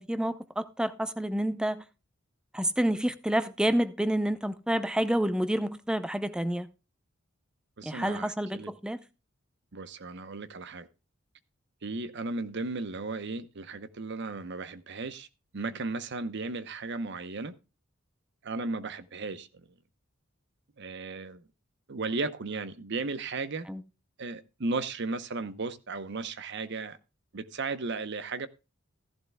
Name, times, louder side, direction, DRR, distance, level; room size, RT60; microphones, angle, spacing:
voice 1, 0.0-1.8 2.5-6.7 7.8-9.0 23.7-23.8, right 1 dB, 5° right, 0.5 m, -29 dB
voice 2, 7.8-8.7 9.7-10.9 11.8-15.3 15.5-17.5 18.4-19.5 20.8-21.4 21.9-23.7 24.2-27.0 27.3-28.5, right 3 dB, 60° right, 0.8 m, -35 dB
14.5 x 11.5 x 2.2 m
head